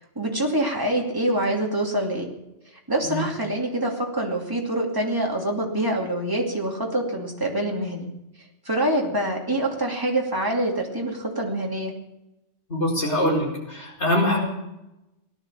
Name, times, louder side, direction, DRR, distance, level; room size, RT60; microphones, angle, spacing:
voice 1, 0.2-2.3 2.9-8.1 8.6-11.9, right 1 dB, 20° right, -1 dB, 2.7 m, -25 dB
voice 2, 12.7-14.4, left 1 dB, 70° left, -2 dB, 5.0 m, -23 dB
17.5 x 11.5 x 6.8 m, 0.93 s
omnidirectional pair, 1.2 m